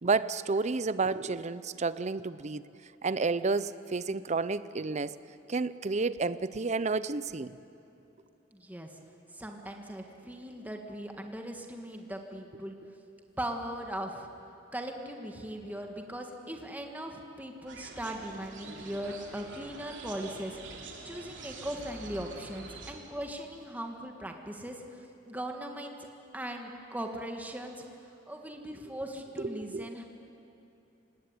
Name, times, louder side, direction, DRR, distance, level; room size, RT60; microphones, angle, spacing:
voice 1, 0.0-2.6 3.0-5.2 5.5-7.5 29.4-29.9, right 4 dB, 35° right, 16 dB, 0.6 m, -30 dB
voice 2, 8.5-8.9 9.3-12.7 13.4-14.3 14.7-26.0 26.3-27.8 28.3-30.0, right 1 dB, 10° right, 3 dB, 1.6 m, -39 dB
sound 1, 17.7-22.9, right 3 dB, 65° right, 3.2 m, -46 dB
25.0 x 18.5 x 9.7 m, 2.8 s
head